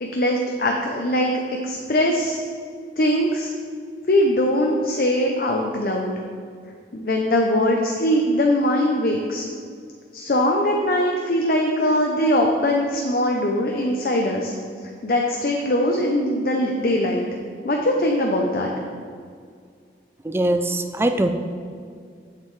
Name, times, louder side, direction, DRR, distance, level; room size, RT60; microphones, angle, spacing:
voice 1, 0.0-2.4 3.0-3.5 4.1-6.1 6.9-9.4 10.1-14.5 15.0-17.3 17.6-18.7, left 1 dB, 55° left, 1 dB, 0.6 m, -21 dB
voice 2, 20.2-21.3, right 1 dB, 15° right, 7 dB, 0.3 m, -21 dB
7.5 x 7.3 x 3.2 m, 2.1 s
head